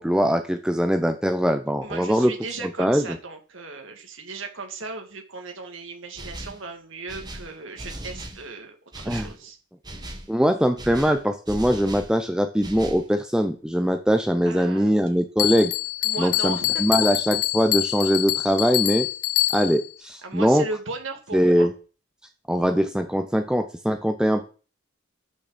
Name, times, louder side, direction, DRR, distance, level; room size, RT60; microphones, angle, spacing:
voice 1, 0.0-2.3 2.6-3.1 9.1-9.3 10.3-15.7 16.2-19.1 19.5-20.6 21.3-21.7 22.5-24.5, equal, 5° right, 7 dB, 0.5 m, -22 dB
voice 2, 1.8-9.6 14.5-15.2 16.0-16.8 20.2-21.7, right 3 dB, 60° right, 3 dB, 2.4 m, -36 dB
sound 1, 6.2-6.7 7.1-8.5 8.9-9.4 9.8-10.3 10.8-12.1 12.6-13.1, right 1 dB, 20° right, 1.3 m, -38 dB
Bell, 15.4-19.9, left 16 dB, 75° left, 0.6 m, -25 dB
12.0 x 6.4 x 4.1 m, 0.37 s
head